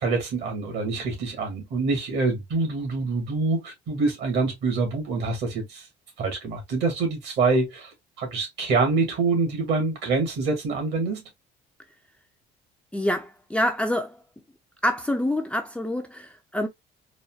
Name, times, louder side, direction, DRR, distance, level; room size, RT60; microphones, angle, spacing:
voice 1, 0.0-5.9 6.2-7.9 8.2-11.2, right 3 dB, 65° right, 1.8 m, -25 dB
voice 2, 12.9-14.2 14.8-16.7, left 1 dB, 5° left, 0.4 m, -26 dB
4.0 x 2.2 x 2.2 m
cardioid pair, 120°, 19 cm